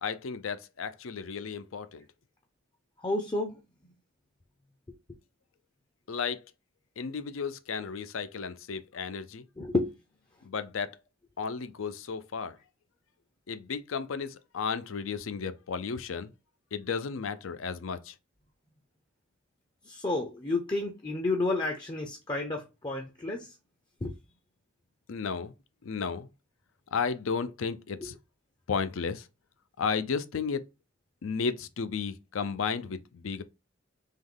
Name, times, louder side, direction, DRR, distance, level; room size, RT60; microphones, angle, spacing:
voice 1, 0.0-2.1 6.1-6.5 7.0-9.5 10.4-11.0 11.4-12.6 13.5-16.3 16.7-18.2 25.1-25.5 25.8-26.3 26.9-28.2 28.7-29.3 29.8-30.6 31.2-33.4, left 5 dB, 80° left, 0.5 m, -33 dB
voice 2, 3.0-3.6 9.6-9.9 19.9-23.5 24.0-24.1, left 2 dB, 20° left, 0.5 m, -30 dB
3.7 x 3.1 x 3.7 m
head